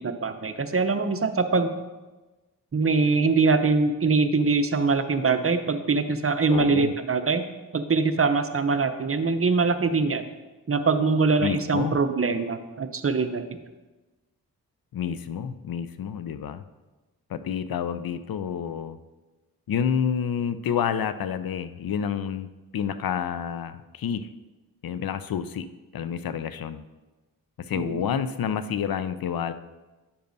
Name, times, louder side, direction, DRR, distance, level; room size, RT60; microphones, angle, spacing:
voice 1, 0.0-1.7 2.7-7.4 7.7-10.3 10.7-13.4 27.8-28.0, right 4 dB, 35° right, 9 dB, 0.7 m, -23 dB
voice 2, 6.5-6.9 11.4-12.0 14.9-16.6 17.3-19.0 19.7-24.3 24.8-25.7 25.9-26.8 27.7-29.5, left 8 dB, 65° left, 12 dB, 0.5 m, -29 dB
10.0 x 6.7 x 2.7 m, 1.2 s
cardioid pair, 40°, 39 cm